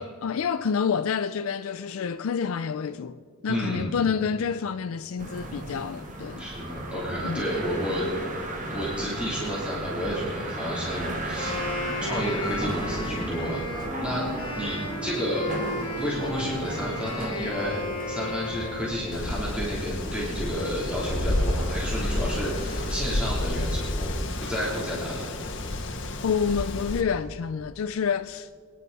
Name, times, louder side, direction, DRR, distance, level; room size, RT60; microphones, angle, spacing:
voice 1, 0.0-3.2 3.4-6.4 7.2-7.4 26.2-28.5, left 6 dB, 75° left, 0.4 m, -28 dB
voice 2, 3.5-3.9 6.4-8.1 8.7-11.5 12.0-13.6 14.0-14.3 14.5-15.5 16.0-17.8 18.1-24.1 24.4-25.2, equal, 5° right, 3.3 m, -31 dB
sound 1, 5.2-22.9, right 1 dB, 35° right, 1.7 m, -36 dB
Wind instrument woodwind instrument, 11.3-19.3, left 1 dB, 25° left, 2.1 m, -34 dB
Wind, 19.1-27.0, left 1 dB, 60° left, 1.3 m, -30 dB
24.0 x 10.5 x 4.1 m
head